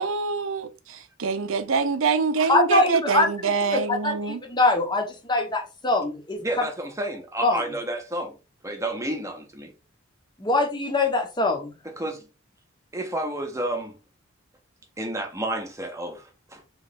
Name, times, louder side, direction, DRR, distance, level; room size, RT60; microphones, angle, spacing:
voice 1, 0.0-4.4, right 4 dB, 70° right, 0.5 m, -25 dB
voice 2, 2.5-3.3 3.7-6.7 7.4-7.6 10.4-11.8, left 2 dB, 20° left, 0.9 m, -23 dB
voice 3, 6.4-8.3 8.6-9.7 12.0-12.2 12.9-14.0 15.0-16.2 16.5-16.6, right 1 dB, 15° right, 0.8 m, -30 dB
3.2 x 3.1 x 4.0 m
head